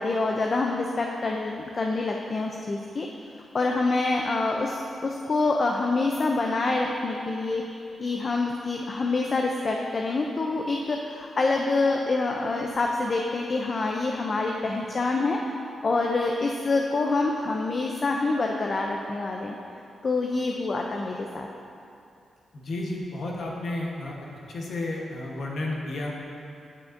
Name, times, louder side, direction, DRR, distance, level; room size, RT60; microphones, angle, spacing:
voice 1, 0.0-3.1 3.5-19.6 20.0-21.5, left 3 dB, 40° left, 1 dB, 0.4 m, -26 dB
voice 2, 22.5-24.2 24.5-26.1, left 2 dB, 65° left, -2 dB, 1.1 m, -32 dB
8.9 x 6.8 x 2.6 m, 2.6 s
wide cardioid pair, 120°, 0 cm